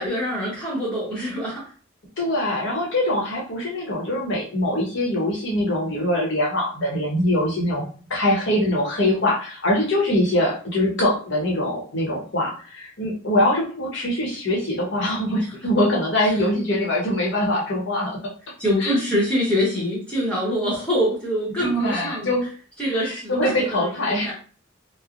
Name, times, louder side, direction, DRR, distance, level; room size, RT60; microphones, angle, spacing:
voice 1, 0.0-1.6 16.2-16.3 18.6-22.3 22.8-24.3, equal, 5° left, -7 dB, 0.9 m, -25 dB
voice 2, 2.2-7.8 8.1-18.2 18.8-19.0 21.5-22.5 22.9-24.3, left 1 dB, 65° left, -2 dB, 1.0 m, -23 dB
3.1 x 2.0 x 2.5 m, 0.41 s
head